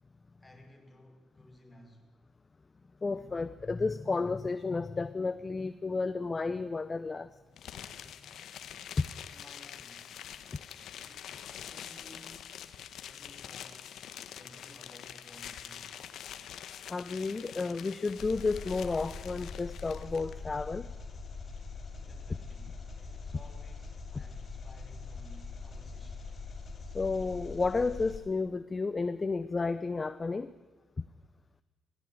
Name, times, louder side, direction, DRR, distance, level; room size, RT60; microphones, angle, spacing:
voice 1, 0.4-2.1 9.3-10.2 10.5-12.7 13.0-14.0 14.3-16.1 22.0-26.3, left 1 dB, 10° left, 5.8 m, -57 dB
voice 2, 3.0-7.3 9.0-9.1 16.9-20.9 26.9-30.5, left 4 dB, 30° left, 0.7 m, -32 dB
sound 1, 7.6-20.3, left 9 dB, 75° left, 1.3 m, -46 dB
Engine, 18.2-28.2, left 4 dB, 45° left, 5.7 m, -43 dB
17.5 x 16.5 x 9.4 m
cardioid pair, 90°, 0 cm